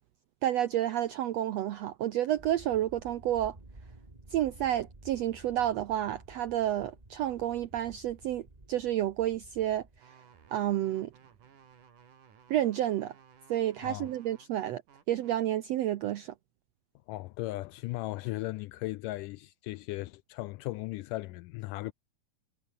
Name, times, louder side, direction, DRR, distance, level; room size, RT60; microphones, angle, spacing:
voice 1, 0.4-3.5 4.3-10.1 10.5-11.1 12.5-13.1 13.5-14.8 15.1-16.3, right 12 dB, 85° right, 1.4 m, -30 dB
sound 1, 2.4-10.0, right 2 dB, 15° right, 2.1 m, -53 dB
sound 2, 10.0-15.4, right 7 dB, 60° right, 4.4 m, -59 dB
voice 2, 17.1-21.9, left 19 dB, 80° left, 2.0 m, -37 dB
omnidirectional pair, 4.1 m